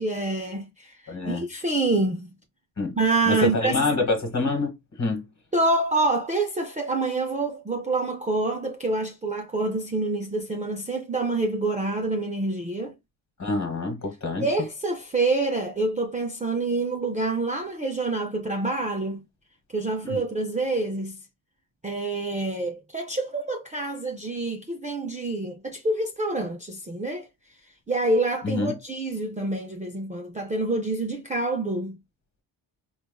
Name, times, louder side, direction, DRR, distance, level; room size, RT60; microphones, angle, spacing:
voice 1, 0.0-2.3 3.0-3.7 5.5-12.9 14.4-19.2 19.7-21.2 21.8-27.3 27.9-32.0, right 2 dB, 15° right, 0.4 m, -27 dB
voice 2, 1.1-1.5 2.8-3.0 3.2-4.7 5.0-5.2 13.4-14.5 20.0-20.2 28.4-28.7, left 2 dB, 35° left, 1.5 m, -26 dB
4.3 x 2.3 x 2.2 m
wide cardioid pair, 115°, 46 cm